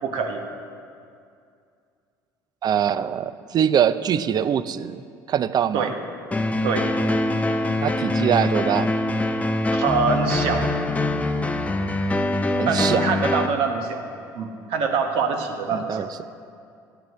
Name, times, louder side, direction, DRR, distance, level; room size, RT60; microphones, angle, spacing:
voice 1, 0.0-0.4 5.7-5.9 6.6-6.9 9.7-10.7 12.7-14.1 14.3-16.1, right 5 dB, 65° right, 4 dB, 1.3 m, -24 dB
voice 2, 2.6-5.0 5.3-5.9 7.8-8.9 12.6-13.1 15.7-16.1, right 9 dB, 45° right, 14 dB, 0.5 m, -23 dB
sound 1, 6.3-13.5, left 1 dB, 15° left, 0.8 m, -23 dB
16.5 x 9.8 x 3.2 m, 2.4 s
hypercardioid pair, 70°, 10 cm